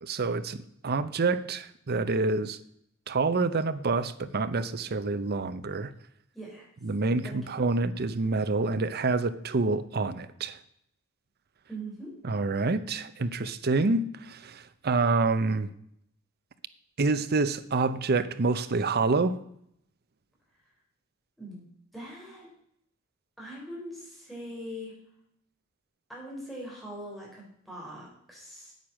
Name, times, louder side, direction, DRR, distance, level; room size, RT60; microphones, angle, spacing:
voice 1, 0.0-0.6 0.8-2.6 3.1-5.9 6.8-10.6 12.2-15.7 17.0-19.4, right 3 dB, 50° right, 0.7 m, -27 dB
voice 2, 6.3-6.7 7.2-7.4 11.7-12.1 21.4-21.6 21.9-22.5 23.4-24.9 26.1-28.7, right 1 dB, ahead, 4.9 m, -41 dB
9.2 x 8.9 x 6.3 m
head